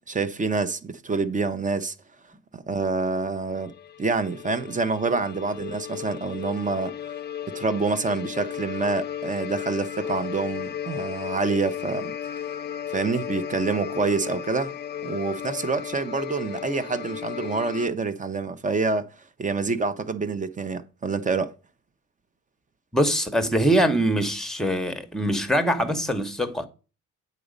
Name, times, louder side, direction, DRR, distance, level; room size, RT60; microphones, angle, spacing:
voice 1, 0.0-1.9 2.5-3.7 4.0-7.0 7.5-12.1 12.9-14.7 15.0-19.1 19.4-21.5, right 4 dB, 25° right, 0.7 m, -27 dB
sound 1, 3.6-17.9, left 10 dB, 35° left, 0.4 m, -35 dB
voice 2, 22.9-26.7, right 1 dB, ahead, 0.9 m, -23 dB
8.4 x 4.1 x 5.1 m
cardioid pair, 90°, 30 cm